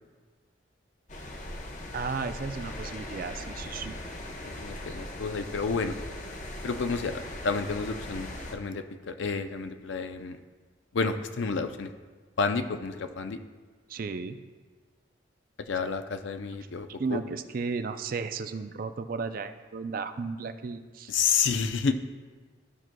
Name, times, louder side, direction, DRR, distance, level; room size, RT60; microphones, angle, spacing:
sound 1, 1.1-8.6, left 1 dB, 40° left, 0.8 m, -39 dB
voice 1, 1.9-3.9 13.9-14.4 17.0-21.1, right 4 dB, 45° right, 10 dB, 0.4 m, -34 dB
voice 2, 4.4-5.9 6.6-10.4 10.9-11.9 12.4-13.4 15.6-17.2 21.1-21.9, left 5 dB, 70° left, 8 dB, 0.5 m, -30 dB
14.5 x 6.1 x 2.2 m, 1.4 s
head